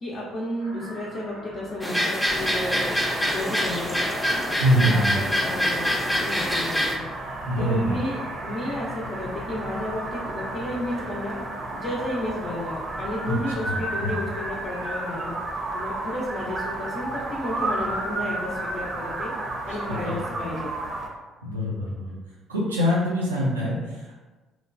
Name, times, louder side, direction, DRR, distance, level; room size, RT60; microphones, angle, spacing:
voice 1, 0.0-2.8 3.2-4.1 4.7-7.0 7.6-11.4 11.7-15.3 15.7-19.3 19.7-20.7 23.0-23.1, left 1 dB, 50° left, -5 dB, 0.5 m, -32 dB
sound 1, 0.6-15.2, left 1 dB, 90° left, 0.7 m, -44 dB
sound 2, 1.8-7.0, equal, 5° left, 0.5 m, -25 dB
sound 3, 2.3-21.1, right 2 dB, 40° right, 0.6 m, -33 dB
voice 2, 4.6-5.2 7.5-8.0 13.2-13.4 13.6-14.2 20.0-20.6 21.4-22.2 22.5-24.1, equal, 90° right, -6 dB, 0.4 m, -25 dB
3.0 x 2.1 x 2.4 m, 1.2 s
hypercardioid pair, 50°, 0 cm